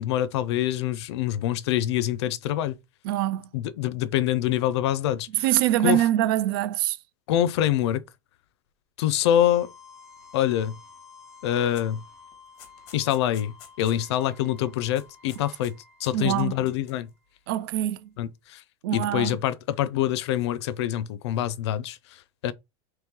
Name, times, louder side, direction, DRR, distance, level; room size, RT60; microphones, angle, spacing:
voice 1, 0.0-2.8 3.5-5.4 5.8-6.0 7.3-8.0 9.0-9.7 10.3-10.8 11.4-12.0 12.9-15.7 16.0-17.1 18.2-18.6 18.9-22.0 22.4-22.5, left 12 dB, 75° left, 0.5 m, -25 dB
voice 2, 3.0-3.5 5.3-7.0 16.1-16.6 17.5-18.1 18.8-19.4, right 13 dB, 60° right, 0.4 m, -24 dB
sound 1, 9.3-17.1, left 5 dB, 5° right, 1.0 m, -51 dB
sound 2, 11.7-12.0 12.3-14.3 14.6-14.7 15.0-15.7 16.0-17.1, left 8 dB, 40° left, 0.9 m, -50 dB
3.0 x 3.0 x 3.6 m
supercardioid pair, 170°, 14 cm